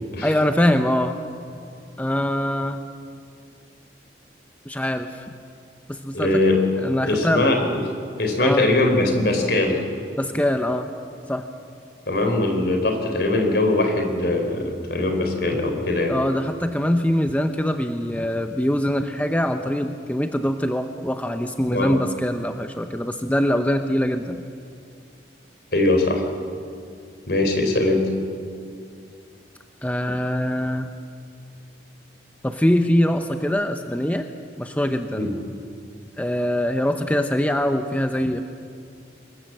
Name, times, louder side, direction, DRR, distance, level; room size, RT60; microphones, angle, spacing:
voice 1, 0.2-1.2 2.0-2.8 4.7-5.2 5.9-7.6 8.4-8.7 10.2-10.9 11.3-11.5 16.1-24.4 29.8-30.9 32.4-34.3 34.6-35.3 36.2-38.4, equal, 10° left, 6 dB, 0.8 m, -23 dB
voice 2, 6.1-6.6 7.0-7.8 8.2-9.8 12.1-16.1 21.7-22.0 25.7-26.2 27.3-28.1 35.2-35.3, left 2 dB, 65° left, 3 dB, 4.1 m, -21 dB
25.5 x 21.5 x 7.7 m, 2.4 s
head